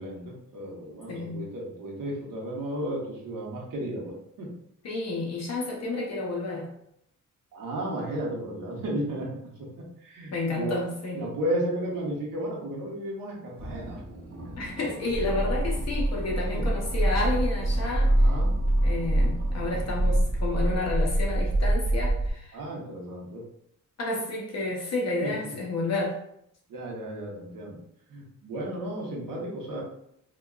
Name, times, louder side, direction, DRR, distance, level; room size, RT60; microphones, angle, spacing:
voice 1, 0.0-4.1 4.4-4.5 7.5-10.7 11.1-14.0 16.5-16.7 18.1-18.5 22.5-23.4 25.2-25.5 26.7-27.8 28.1-29.8, right 1 dB, 80° right, -3 dB, 1.0 m, -34 dB
voice 2, 1.1-1.5 4.8-6.7 10.3-11.3 14.6-18.3 18.8-22.6 24.0-26.2, left 2 dB, 50° left, -2 dB, 0.7 m, -31 dB
Monster sound, 13.5-20.8, right 1 dB, 45° right, 0.8 m, -43 dB
sound 1, 15.1-22.3, right 1 dB, 15° right, 1.0 m, -25 dB
4.8 x 2.2 x 2.3 m, 0.73 s
wide cardioid pair, 155°, 33 cm